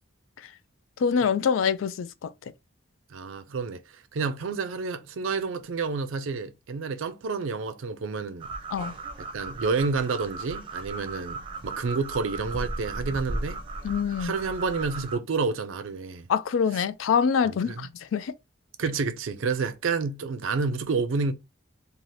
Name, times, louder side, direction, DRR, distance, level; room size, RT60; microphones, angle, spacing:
voice 1, 1.0-2.3 8.7-8.9 13.8-14.3 16.3-18.3, left 6 dB, 85° left, 0.3 m, -25 dB
voice 2, 3.1-3.8 4.1-8.5 9.2-13.6 14.2-16.3 17.4-17.9 18.8-21.3, right 4 dB, 85° right, 0.5 m, -29 dB
sound 1, 8.4-15.2, right 2 dB, 25° right, 0.6 m, -36 dB
2.7 x 2.4 x 3.1 m
head